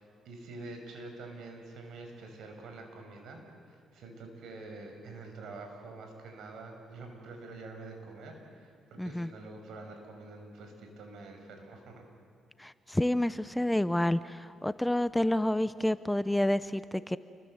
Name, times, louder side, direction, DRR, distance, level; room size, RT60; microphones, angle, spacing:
voice 1, 0.0-3.4 3.7-12.0, right 3 dB, 75° right, 4 dB, 6.3 m, -46 dB
voice 2, 9.0-9.3 12.6-17.2, left 1 dB, 5° left, 14 dB, 0.7 m, -29 dB
30.0 x 23.5 x 8.0 m, 2.6 s
cardioid pair, 90°, 0 cm